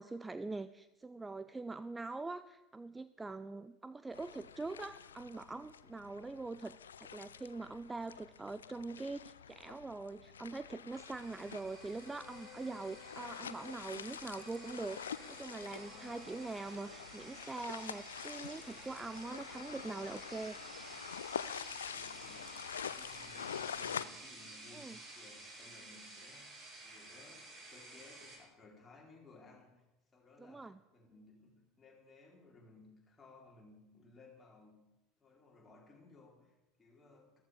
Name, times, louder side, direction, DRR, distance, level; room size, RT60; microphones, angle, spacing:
voice 1, 0.0-20.6 24.7-25.0 30.4-30.8, right 3 dB, 15° right, 13 dB, 0.4 m, -43 dB
sound 1, 4.1-24.0, left 8 dB, 75° left, 0.4 m, -47 dB
sound 2, 10.9-28.4, right 2 dB, 35° right, 4.5 m, -53 dB
Bowed string instrument, 11.9-17.0, left 10 dB, 55° left, 1.0 m, -59 dB
voice 2, 15.8-16.3 21.9-22.6 22.8-29.8 30.1-34.8 35.2-37.4, left 3 dB, 20° left, -2 dB, 4.3 m, -60 dB
14.5 x 13.5 x 5.0 m, 0.96 s
figure-of-eight pair, 75°, 0 cm